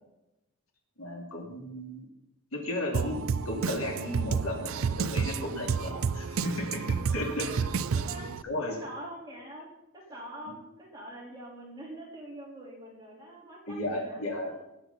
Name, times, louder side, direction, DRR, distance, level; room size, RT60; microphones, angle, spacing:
voice 1, 1.0-2.1 2.5-3.2 3.4-7.5 8.4-8.8 13.7-14.5, left 1 dB, 80° left, 1 dB, 2.7 m, -34 dB
Drum kit, 2.9-8.4, right 5 dB, 75° right, 0.5 m, -30 dB
voice 2, 7.9-8.3 8.7-14.6, right 1 dB, 20° right, -4 dB, 3.8 m, -45 dB
19.0 x 7.9 x 4.1 m, 0.92 s
head